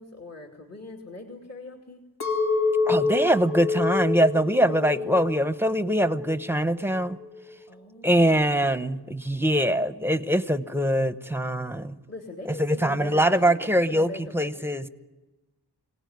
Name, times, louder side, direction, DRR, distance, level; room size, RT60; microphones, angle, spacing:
voice 1, 0.0-2.0 4.3-5.3 7.7-8.6 12.1-13.6 13.9-14.8, left 1 dB, 40° left, 1 dB, 2.5 m, -41 dB
Chink clink, 2.2-6.5 6.9-7.5, left 4 dB, 70° left, 2.4 m, -27 dB
voice 2, 2.9-7.2 8.0-12.0 12.6-14.9, equal, 5° right, 11 dB, 0.9 m, -23 dB
25.0 x 18.0 x 9.4 m, 1.1 s
wide cardioid pair, 90°, 40 cm